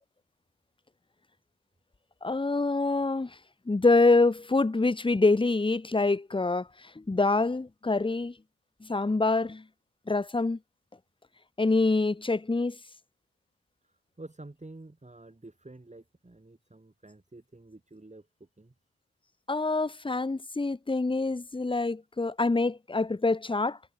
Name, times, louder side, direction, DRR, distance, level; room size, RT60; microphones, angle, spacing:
voice 1, 2.2-3.4 3.7-8.3 8.8-9.6 10.1-10.6 11.6-12.8 19.5-23.8, left 3 dB, 15° left, 0.7 m, -26 dB
voice 2, 13.8-18.7, right 2 dB, 20° right, 2.3 m, -49 dB
cardioid pair, 50°, 35 cm